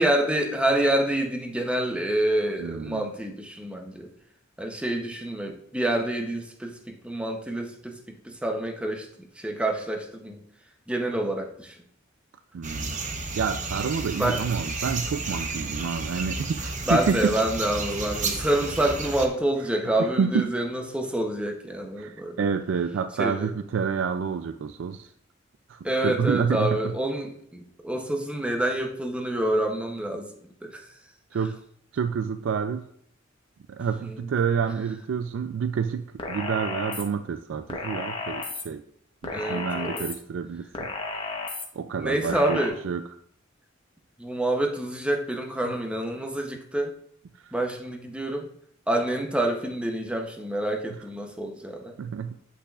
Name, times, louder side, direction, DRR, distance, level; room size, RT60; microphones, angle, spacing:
voice 1, 0.0-4.1 4.6-10.4 10.9-11.8 14.2-14.4 16.8-22.4 23.2-23.5 25.8-30.3 30.6-31.0 34.0-34.3 39.3-40.0 41.9-42.8 44.2-46.9 47.5-48.5 48.9-52.0, right 1 dB, 5° right, 3 dB, 0.7 m, -27 dB
voice 2, 2.6-3.1 12.5-13.0 13.4-17.4 20.0-20.5 22.0-25.1 25.7-26.9 31.3-31.6 31.9-32.9 33.7-38.8 39.2-40.9 41.2-41.3 41.7-42.6 42.8-43.0 52.0-52.3, right 6 dB, 70° right, 10 dB, 0.3 m, -28 dB
sound 1, 12.6-19.3, right 3 dB, 40° right, 0.7 m, -32 dB
sound 2, 36.2-37.0 37.7-38.6 39.2-40.1 40.7-41.7 42.3-42.7, left 3 dB, 25° left, 1.0 m, -33 dB
8.4 x 5.6 x 2.4 m, 0.64 s
head